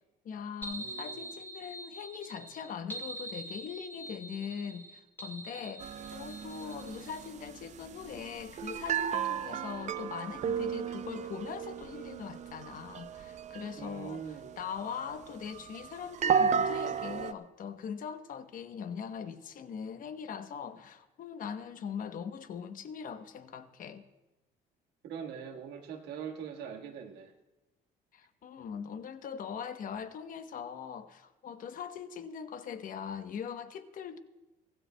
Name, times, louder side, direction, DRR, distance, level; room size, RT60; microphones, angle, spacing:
voice 1, 0.2-24.1 28.1-34.2, left 7 dB, 55° left, 0.9 m, -41 dB
sound 1, 0.6-7.3, right 1 dB, 10° left, 1.7 m, -44 dB
voice 2, 0.8-1.3 13.8-14.6 25.0-27.3, right 7 dB, 80° right, 1.5 m, -42 dB
sound 2, 5.8-17.3, right 7 dB, 45° right, 0.5 m, -34 dB
24.0 x 16.0 x 2.2 m
cardioid pair, 110°, 17 cm